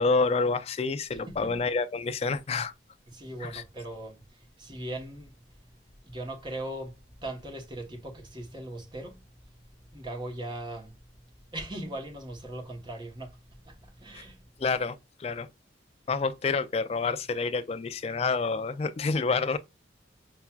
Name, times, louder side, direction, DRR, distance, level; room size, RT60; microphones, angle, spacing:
voice 1, 0.0-2.7 3.4-3.6 14.6-14.9 15.2-15.5 16.1-19.6, left 4 dB, 30° left, 0.3 m, -28 dB
voice 2, 1.1-1.6 3.1-4.2 4.6-5.3 6.0-9.2 9.9-10.9 11.5-13.4 13.7-14.4, right 1 dB, 25° right, 0.9 m, -39 dB
5.6 x 2.3 x 2.2 m
head